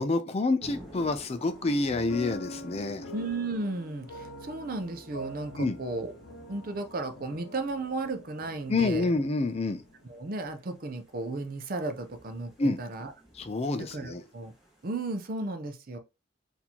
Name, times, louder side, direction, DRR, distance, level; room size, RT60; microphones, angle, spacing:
voice 1, 0.0-3.1 5.5-5.8 8.7-9.8 12.6-12.8 13.3-14.2, left 3 dB, 30° left, 0.4 m, -28 dB
sound 1, 0.6-15.3, right 1 dB, ahead, 1.5 m, -53 dB
sound 2, 1.4-10.7, left 1 dB, 90° left, 0.7 m, -46 dB
voice 2, 3.1-6.1 6.5-9.1 10.0-12.5 12.8-13.1 13.9-14.5 14.8-16.0, right 2 dB, 45° right, 0.6 m, -34 dB
4.3 x 2.7 x 2.9 m
head